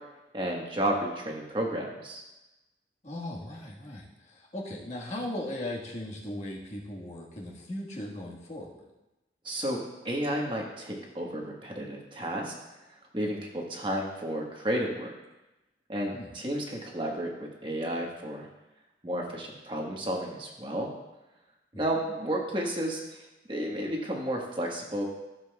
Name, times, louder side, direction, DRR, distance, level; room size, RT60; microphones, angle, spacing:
voice 1, 0.3-2.2 9.4-12.5 13.1-15.1 15.9-18.5 19.0-20.9 21.8-23.2 23.5-25.1, right 1 dB, 25° right, -1 dB, 1.4 m, -32 dB
voice 2, 3.0-8.9 16.1-16.3, left 1 dB, 40° left, -3 dB, 1.5 m, -38 dB
15.0 x 7.3 x 2.3 m, 1.0 s
head